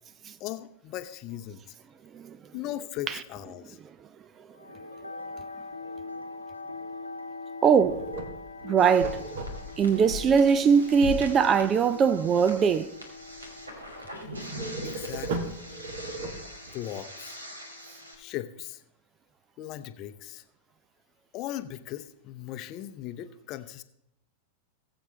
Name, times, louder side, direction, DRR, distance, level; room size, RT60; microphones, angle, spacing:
voice 1, 0.4-1.6 2.5-3.8 14.8-15.6 16.7-17.4 18.1-18.8 19.6-20.4 21.3-23.8, left 13 dB, 40° left, 0.7 m, -38 dB
sound 1, 4.5-18.6, left 3 dB, 85° left, 1.1 m, -43 dB
voice 2, 7.6-8.1 8.6-9.3 9.8-12.9, right 6 dB, 25° right, 0.4 m, -21 dB
sound 2, 7.7-10.0 14.5-16.8, right 3 dB, 55° right, 1.4 m, -36 dB
sound 3, 8.8-18.1, left 1 dB, 80° right, 2.1 m, -41 dB
19.5 x 8.0 x 3.3 m
figure-of-eight pair, 90°, 0 cm